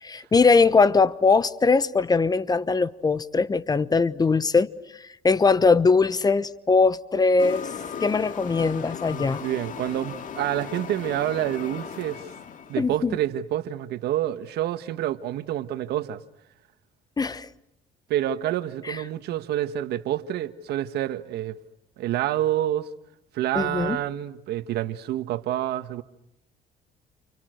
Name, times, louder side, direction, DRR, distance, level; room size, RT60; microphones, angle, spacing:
voice 1, 0.0-4.7 5.0-7.7 8.0-9.4 12.8-13.2 17.2-17.5 18.8-19.0 23.5-24.0, left 4 dB, 25° left, 1.0 m, -21 dB
sound 1, 7.4-12.9, left 7 dB, 50° left, 2.6 m, -37 dB
voice 2, 9.1-12.3 12.7-16.2 18.1-21.6 22.0-22.9 23.3-26.0, right 12 dB, 75° right, 1.5 m, -28 dB
30.0 x 29.5 x 6.5 m
cardioid pair, 110°, 17 cm